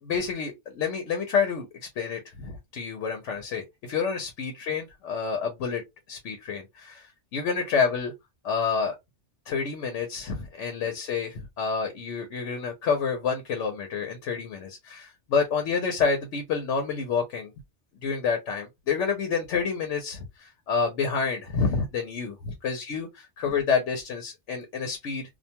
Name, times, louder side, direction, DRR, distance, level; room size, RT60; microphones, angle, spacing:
voice 1, 0.0-5.8 6.1-7.1 7.3-8.1 8.4-8.9 9.5-17.5 18.0-25.2, left 5 dB, 90° left, 1.0 m, -28 dB
2.4 x 2.2 x 2.7 m
omnidirectional pair, 1.2 m